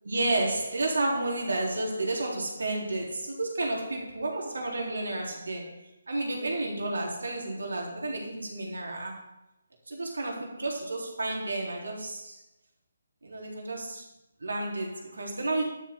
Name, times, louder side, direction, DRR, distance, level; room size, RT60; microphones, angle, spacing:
voice 1, 0.0-5.7 6.1-9.2 9.9-12.4 13.2-14.0 14.4-15.6, right 2 dB, 75° right, -1 dB, 3.9 m, -31 dB
12.0 x 12.0 x 3.8 m, 0.88 s
figure-of-eight pair, 150°, 0 cm